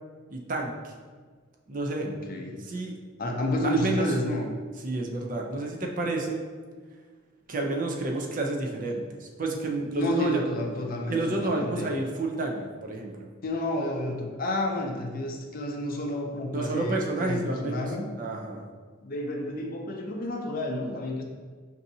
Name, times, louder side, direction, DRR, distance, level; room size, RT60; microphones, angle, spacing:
voice 1, 0.3-0.9 1.7-2.1 2.7-2.9 3.6-4.1 4.8-6.4 7.5-10.4 11.1-13.3 16.5-18.6, right 2 dB, 40° right, 1 dB, 0.5 m, -30 dB
voice 2, 2.0-2.6 3.2-4.5 10.0-11.9 13.4-18.1 19.0-21.2, left 1 dB, 45° left, 2 dB, 0.5 m, -30 dB
5.8 x 2.7 x 2.7 m, 1.5 s
head